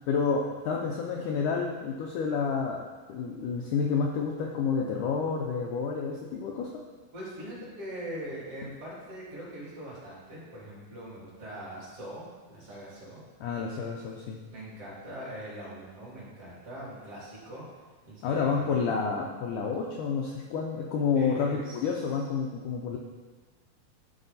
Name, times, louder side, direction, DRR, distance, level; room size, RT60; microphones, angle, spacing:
voice 1, 0.1-6.7 13.4-14.4 18.2-23.0, left 5 dB, 80° left, -1 dB, 1.9 m, -29 dB
voice 2, 7.1-13.2 14.5-17.6 18.0-18.9 21.2-21.8, right 1 dB, 40° right, -7 dB, 3.5 m, -42 dB
12.0 x 5.1 x 4.1 m, 1.3 s
omnidirectional pair, 4.3 m